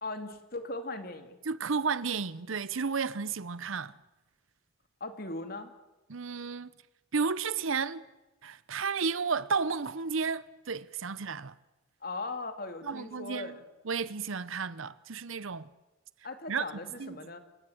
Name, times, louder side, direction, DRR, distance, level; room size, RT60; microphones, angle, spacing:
voice 1, 0.0-1.4 5.0-5.7 12.0-13.6 16.2-17.4, left 2 dB, 45° left, 2.4 m, -39 dB
voice 2, 1.4-3.9 6.1-6.7 7.1-8.0 8.4-11.5 12.8-13.6 13.8-15.7 16.5-16.6 17.0-17.2, right 5 dB, 75° right, 0.8 m, -32 dB
29.5 x 16.5 x 8.0 m
head